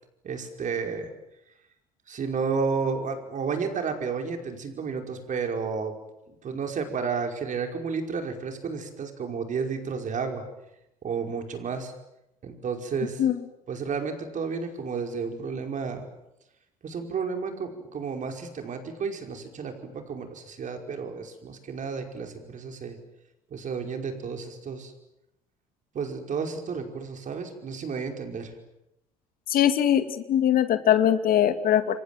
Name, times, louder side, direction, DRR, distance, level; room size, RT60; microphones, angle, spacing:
voice 1, 0.2-1.1 2.1-5.9 6.4-10.4 11.0-11.9 12.4-13.2 13.7-16.1 16.8-23.0 23.5-24.9 25.9-28.5, right 5 dB, 45° right, 4 dB, 5.3 m, -32 dB
voice 2, 29.5-32.0, left 10 dB, 50° left, 10 dB, 2.2 m, -22 dB
28.5 x 25.0 x 7.6 m, 0.87 s
hypercardioid pair, 65°, 18 cm